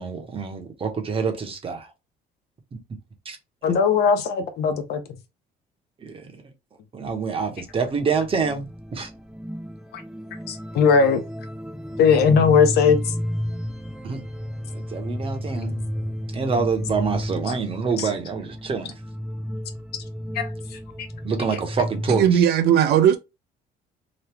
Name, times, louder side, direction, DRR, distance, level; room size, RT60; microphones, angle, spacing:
voice 1, 0.0-1.9 2.7-2.8 3.2-3.4 6.0-6.4 6.9-9.1 14.0-14.2 14.7-15.7 16.3-18.9 21.2-22.4, right 5 dB, 35° right, 0.9 m, -26 dB
voice 2, 3.6-5.0 9.9-10.0 10.5-11.2 12.0-13.1 15.7-15.8 18.0-18.1 20.3-20.8, left 6 dB, 70° left, 0.8 m, -19 dB
sound 1, 7.6-22.2, equal, 5° right, 0.6 m, -32 dB
voice 3, 22.1-23.2, right 9 dB, 75° right, 0.5 m, -17 dB
3.0 x 2.2 x 3.4 m
cardioid pair, 110°, 17 cm